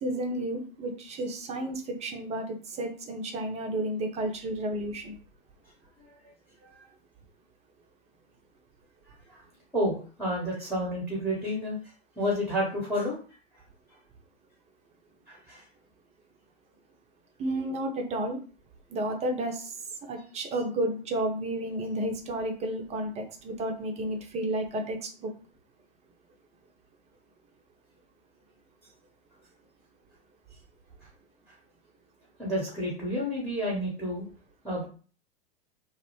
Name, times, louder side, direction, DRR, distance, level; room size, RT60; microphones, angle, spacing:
voice 1, 0.0-5.2 17.4-18.4 18.9-19.7 20.1-25.3, right 1 dB, 20° right, 4 dB, 0.5 m, -32 dB
voice 2, 9.7-11.8 12.2-13.2 15.3-15.6 32.4-34.2 34.6-34.9, equal, ahead, -4 dB, 0.9 m, -30 dB
2.4 x 2.0 x 3.0 m, 0.38 s
figure-of-eight pair, 90°, 30 cm